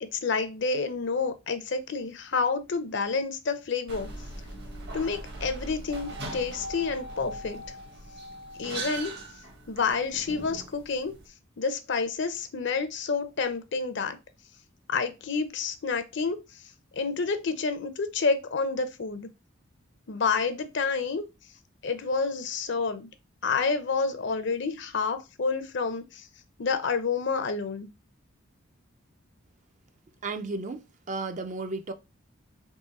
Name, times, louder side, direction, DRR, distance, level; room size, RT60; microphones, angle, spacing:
voice 1, 0.0-4.1 4.9-7.6 8.6-9.2 9.7-11.1 11.6-14.2 14.9-16.4 17.0-19.3 20.1-21.3 21.8-23.1 23.4-26.2 26.6-27.9, left 4 dB, 55° left, 0.6 m, -29 dB
sound 1, 3.9-11.3, right 2 dB, 50° right, 1.2 m, -40 dB
voice 2, 30.2-31.9, right 3 dB, 35° right, 0.5 m, -34 dB
3.7 x 3.1 x 4.1 m
head